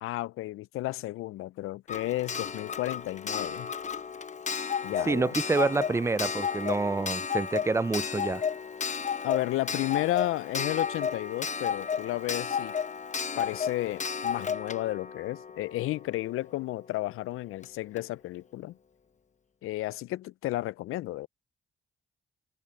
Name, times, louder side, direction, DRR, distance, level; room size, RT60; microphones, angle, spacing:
voice 1, 0.0-3.7 4.8-5.3 9.2-12.7 13.3-18.8 19.6-21.3, left 17 dB, 80° left, 0.4 m, -32 dB
Clock, 1.9-16.5 17.6-17.7 18.0-18.1, left 6 dB, 35° left, 0.8 m, -33 dB
voice 2, 5.1-8.4, right 3 dB, 15° right, 0.3 m, -27 dB
cardioid pair, 65°, 21 cm